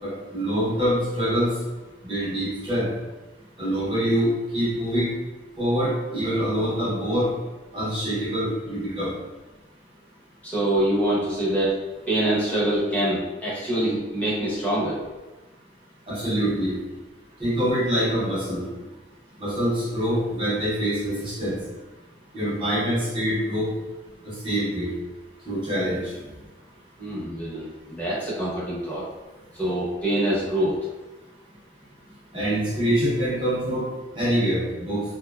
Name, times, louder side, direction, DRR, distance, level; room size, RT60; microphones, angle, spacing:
voice 1, 0.0-1.5 2.0-2.9 3.6-5.1 5.6-7.3 7.7-9.1 16.1-16.7 17.4-18.6 19.4-21.6 22.3-23.7 24.2-24.9 25.5-26.1 32.3-33.9 34.1-35.0, equal, 25° right, -7 dB, 0.6 m, -25 dB
voice 2, 10.4-11.7 12.1-15.0 27.0-29.0 29.6-30.7, right 1 dB, 10° left, -9 dB, 0.7 m, -25 dB
2.5 x 2.2 x 2.2 m, 1.2 s
head